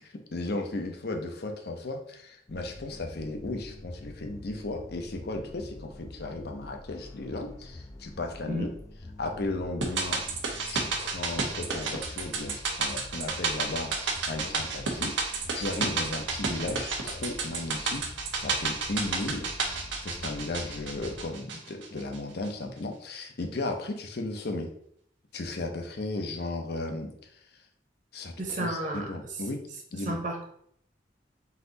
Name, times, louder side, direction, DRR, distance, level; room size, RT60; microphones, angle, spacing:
voice 1, 0.0-8.7 9.2-10.2 10.6-18.0 18.3-19.6 20.0-24.7 25.3-27.4 28.1-28.3 28.6-29.6 29.9-30.2, left 2 dB, 60° left, 4 dB, 0.7 m, -35 dB
sound 1, 2.5-21.2, left 1 dB, 15° left, 0.3 m, -46 dB
sound 2, 9.8-22.2 22.4-22.5, right 4 dB, 85° right, 0.8 m, -32 dB
voice 2, 28.4-29.1 30.0-30.4, right 1 dB, 45° right, 1 dB, 0.9 m, -32 dB
4.1 x 2.7 x 3.9 m, 0.67 s
head